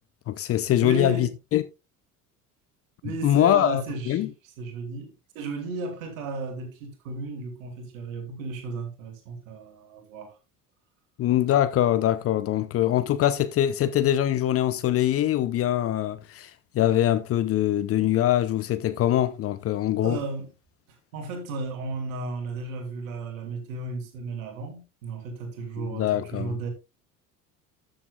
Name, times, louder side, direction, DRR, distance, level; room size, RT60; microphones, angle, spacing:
voice 1, 0.3-1.6 3.2-4.3 11.2-20.2 25.8-26.6, left 12 dB, 30° left, 0.7 m, -23 dB
voice 2, 0.8-1.3 3.0-4.2 4.6-10.4 20.0-20.5 20.9-26.7, right 3 dB, 60° right, 2.9 m, -34 dB
13.0 x 7.7 x 2.5 m
figure-of-eight pair, 65°, 45 cm